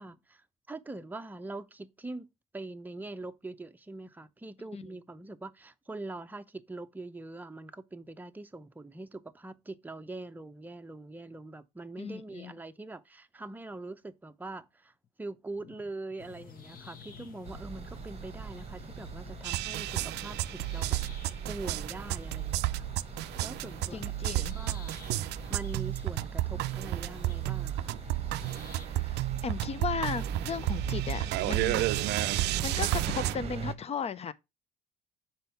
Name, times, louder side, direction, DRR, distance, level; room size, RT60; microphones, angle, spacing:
voice 1, 0.0-2.3 2.5-14.9 15.2-21.0 21.5-22.9 23.4-24.3 24.5-24.9 25.5-28.0, right 2 dB, 10° right, 0.7 m, -43 dB
voice 2, 12.0-12.5 23.9-24.6 28.7-32.3 32.6-34.3, left 6 dB, 35° left, 0.7 m, -36 dB
sound 1, 16.2-28.9, left 5 dB, 50° left, 1.3 m, -50 dB
sound 2, 17.5-33.8, right 6 dB, 35° right, 1.0 m, -41 dB
sound 3, 19.4-33.3, right 17 dB, 70° right, 0.4 m, -32 dB
5.4 x 4.3 x 5.8 m
supercardioid pair, 90°, 18 cm